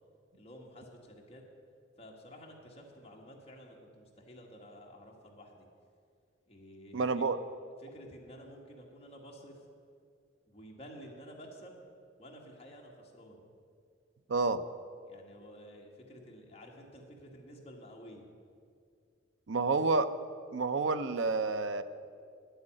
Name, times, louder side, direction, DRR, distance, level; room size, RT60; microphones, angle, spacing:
voice 1, 0.3-1.4 2.0-5.7 6.5-7.2 7.8-9.6 10.5-11.8 12.2-13.4 15.0-18.3, equal, 30° left, -1 dB, 1.7 m, -51 dB
voice 2, 6.9-7.4 14.3-14.6 19.5-20.1 20.5-21.8, right 3 dB, 80° right, 11 dB, 0.6 m, -29 dB
10.0 x 7.9 x 8.9 m, 2.3 s
head